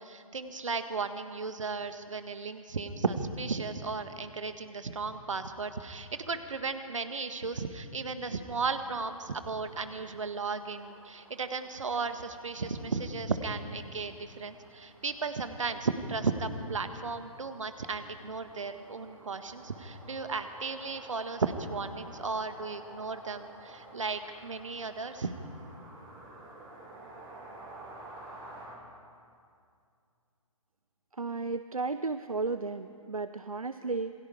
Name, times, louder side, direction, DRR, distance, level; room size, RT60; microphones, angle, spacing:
voice 1, 0.0-25.3, right 4 dB, 60° right, 9 dB, 1.6 m, -35 dB
sound 1, 9.0-28.7, right 2 dB, 20° right, 7.3 m, -52 dB
voice 2, 31.1-34.1, right 3 dB, 80° right, 12 dB, 0.8 m, -34 dB
27.5 x 21.5 x 5.0 m, 2.4 s
figure-of-eight pair, 130°, 18 cm